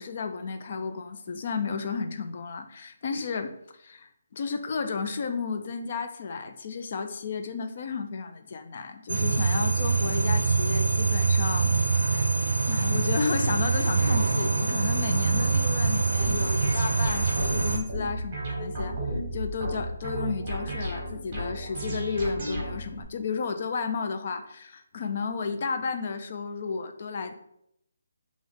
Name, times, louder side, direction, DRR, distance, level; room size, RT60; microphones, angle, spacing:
voice 1, 0.0-12.2 12.7-19.0 19.3-27.3, left 5 dB, 35° left, 7 dB, 0.3 m, -33 dB
sound 1, 9.1-17.8, right 4 dB, 60° right, 0.5 m, -24 dB
sound 2, 16.2-23.0, right 1 dB, 20° right, 1.3 m, -33 dB
3.5 x 3.0 x 3.6 m, 0.77 s
hypercardioid pair, 175°, 0 cm